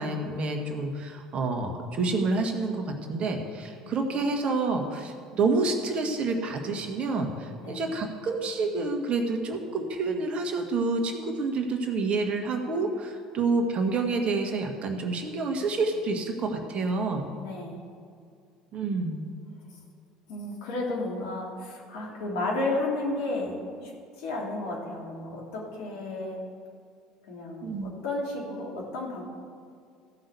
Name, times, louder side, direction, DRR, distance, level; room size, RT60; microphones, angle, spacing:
voice 1, 0.0-17.3 18.7-19.3 27.6-27.9, right 3 dB, 45° right, 4 dB, 1.7 m, -28 dB
voice 2, 17.3-17.8 20.3-23.9 24.2-26.4 27.3-29.2, left 2 dB, 70° left, -2 dB, 2.9 m, -32 dB
14.5 x 5.8 x 7.0 m, 2.3 s
hypercardioid pair, 65°, 3 cm